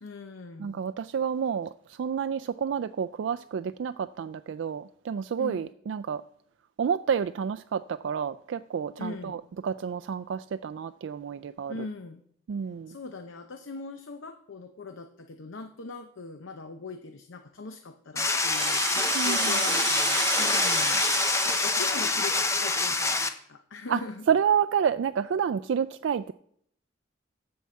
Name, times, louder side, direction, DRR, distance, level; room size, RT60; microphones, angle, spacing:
voice 1, 0.0-0.8 5.4-5.7 9.0-9.4 11.7-12.2 12.9-21.1 21.4-24.3, left 4 dB, 80° left, 0.7 m, -41 dB
voice 2, 0.6-6.2 6.8-11.9 12.5-13.0 19.1-19.6 23.9-24.0 24.3-26.3, right 7 dB, 70° right, 0.3 m, -29 dB
sound 1, 18.2-23.3, left 3 dB, 15° left, 0.6 m, -26 dB
Rattle (instrument), 18.3-23.0, right 3 dB, 25° right, 2.2 m, -32 dB
12.5 x 4.7 x 7.5 m
head